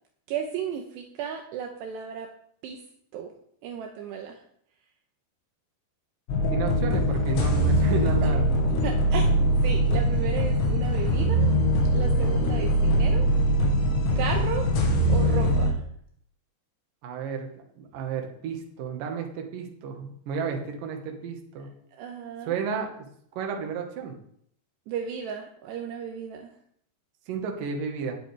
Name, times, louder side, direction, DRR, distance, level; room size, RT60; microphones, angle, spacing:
voice 1, 0.3-2.3 2.6-2.8 3.1-3.3 3.6-4.4 8.2-8.3 8.8-11.5 11.9-13.3 14.2-14.7 15.1-15.8 21.6-22.6 24.9-26.5, right 7 dB, 75° right, 3 dB, 2.8 m, -34 dB
sound 1, 6.3-15.7, equal, 70° left, 3.7 m, -22 dB
voice 2, 6.5-8.5 17.0-21.7 22.4-23.1 23.4-24.1 27.3-28.1, right 6 dB, 60° right, 3 dB, 2.8 m, -32 dB
19.0 x 7.6 x 3.5 m, 0.66 s
omnidirectional pair, 5.2 m